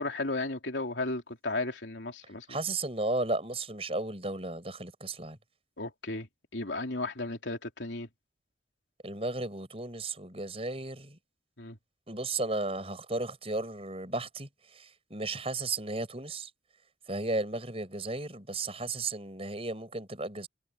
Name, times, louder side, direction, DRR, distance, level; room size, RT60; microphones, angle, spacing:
voice 1, 0.0-2.6 5.8-6.3 6.5-8.1 11.6-11.8, left 2 dB, 85° left, 3.5 m, -34 dB
voice 2, 2.5-5.4 9.0-11.2 12.1-16.5 17.1-20.5, right 2 dB, 35° right, 6.9 m, -34 dB
head